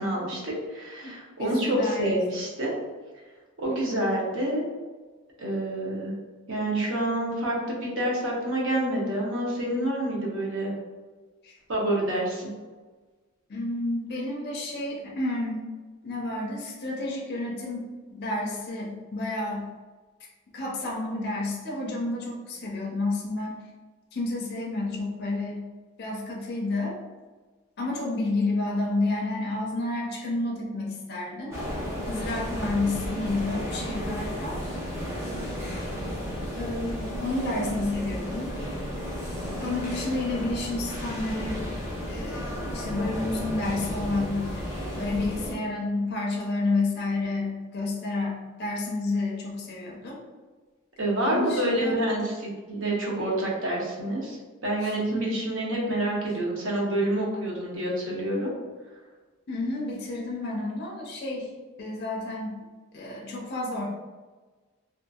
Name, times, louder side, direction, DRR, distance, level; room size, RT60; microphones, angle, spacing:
voice 1, 0.0-2.7 3.6-4.6 5.4-6.1 6.5-10.7 11.7-12.5 51.0-54.4 54.6-58.5, right 1 dB, 65° right, -3 dB, 0.8 m, -27 dB
voice 2, 1.4-2.1 11.4-11.6 13.5-15.6 16.0-19.7 20.5-23.6 24.1-25.6 26.0-27.0 27.8-31.6 32.1-34.6 36.6-38.6 39.6-41.6 42.1-44.6 45.0-50.2 51.2-52.1 54.8-54.9 59.5-61.5 61.8-62.6 62.9-63.8, left 2 dB, 50° left, -2 dB, 0.5 m, -30 dB
sound 1, 31.5-45.5, equal, 15° right, 0.6 m, -33 dB
2.7 x 2.5 x 2.3 m, 1.3 s
head